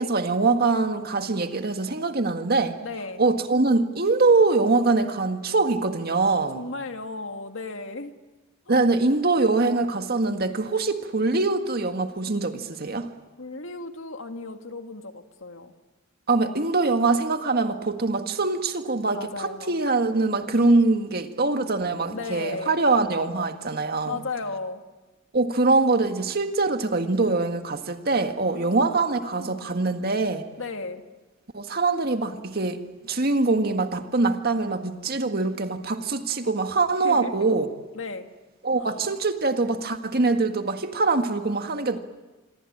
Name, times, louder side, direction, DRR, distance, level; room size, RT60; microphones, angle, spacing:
voice 1, 0.0-2.7 3.2-6.6 8.7-13.1 16.3-24.2 25.3-30.5 31.5-37.7 38.6-42.0, right 3 dB, 50° right, 6 dB, 1.8 m, -23 dB
voice 2, 2.8-3.2 6.2-8.1 8.7-8.8 13.4-15.7 19.1-19.8 22.1-22.8 24.1-24.8 28.4-29.8 30.6-31.0 37.0-37.3 37.9-38.3 38.8-39.0, left 3 dB, 85° left, 6 dB, 1.9 m, -35 dB
26.5 x 23.5 x 8.7 m, 1.2 s
head